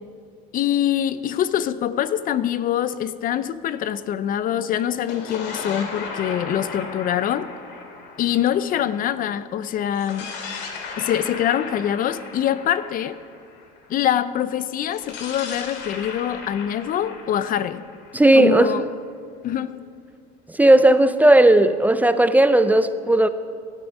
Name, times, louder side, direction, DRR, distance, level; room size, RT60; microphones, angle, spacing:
voice 1, 0.5-7.5 8.2-10.3 11.0-13.2 13.9-17.9 18.3-18.9 19.4-19.9, left 10 dB, 45° left, 0.6 m, -24 dB
sound 1, 4.9-9.3 9.9-13.9 14.9-18.7, left 4 dB, 60° left, 2.6 m, -36 dB
voice 2, 18.1-18.7 20.6-23.3, right 1 dB, 10° right, 0.5 m, -15 dB
18.0 x 12.0 x 5.4 m
supercardioid pair, 105°, 20 cm